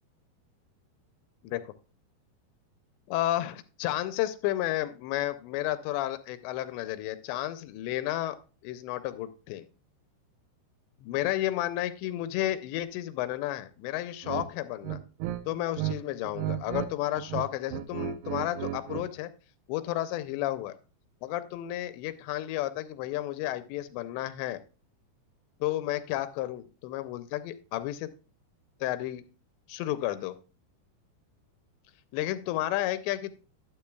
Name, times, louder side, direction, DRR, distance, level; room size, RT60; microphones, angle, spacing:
voice 1, 3.1-8.4 8.6-9.7 11.0-15.0 15.5-19.3 19.7-20.7 21.2-24.6 25.6-28.1 28.8-29.2 29.7-30.4 32.1-33.3, left 14 dB, 85° left, 12 dB, 2.8 m, -32 dB
sound 1, 14.2-14.5 14.8-16.0 16.2-16.9 17.2-19.1, right 12 dB, 80° right, 2.8 m, -34 dB
11.5 x 9.1 x 2.3 m, 0.35 s
omnidirectional pair, 5.0 m